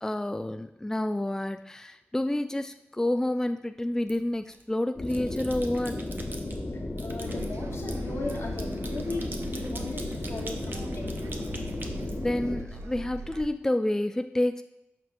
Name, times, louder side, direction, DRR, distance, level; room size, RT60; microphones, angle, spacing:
voice 1, 0.0-6.0 12.2-14.6, left 1 dB, 10° left, 8 dB, 0.3 m, -29 dB
sound 1, 4.1-4.6 5.0-6.6 7.0-12.7, right 2 dB, 50° right, 0.8 m, -44 dB
sound 2, 5.0-12.6, left 2 dB, 45° left, 1.2 m, -34 dB
voice 2, 6.7-11.2, left 3 dB, 70° left, 1 dB, 1.1 m, -38 dB
sound 3, 7.2-13.5, right 3 dB, 85° right, 0.5 m, -42 dB
12.0 x 4.5 x 2.5 m, 0.83 s
cardioid pair, 55°, 5 cm